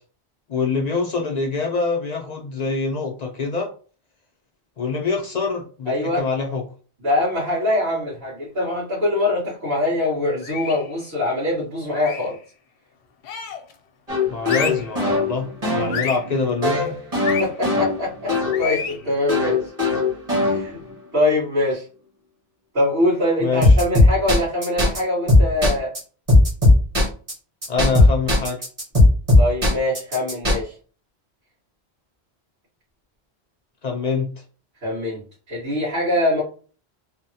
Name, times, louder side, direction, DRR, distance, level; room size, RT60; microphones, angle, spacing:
voice 1, 0.5-3.7 4.8-6.6 14.3-15.5 15.7-17.0 23.4-23.8 27.7-28.6 33.8-34.3, left 4 dB, 55° left, 1 dB, 0.5 m, -25 dB
voice 2, 5.9-6.2 7.0-12.4 17.4-19.6 20.3-20.8 21.1-21.9 22.7-25.9 29.4-30.7 34.8-35.2 35.5-36.4, left 1 dB, 60° right, -10 dB, 1.8 m, -23 dB
sound 1, 10.4-10.9 11.9-12.4 13.2-13.7 14.4-14.9 15.9-16.3 17.2-17.5 18.5-19.0, left 7 dB, 85° left, 0.9 m, -29 dB
sound 2, 14.1-18.6 19.3-20.9 23.6-25.0 25.3-26.0 26.3-27.3 27.6-30.5, left 2 dB, 35° right, 1.3 m, -17 dB
3.4 x 2.1 x 2.7 m, 0.39 s
omnidirectional pair, 1.1 m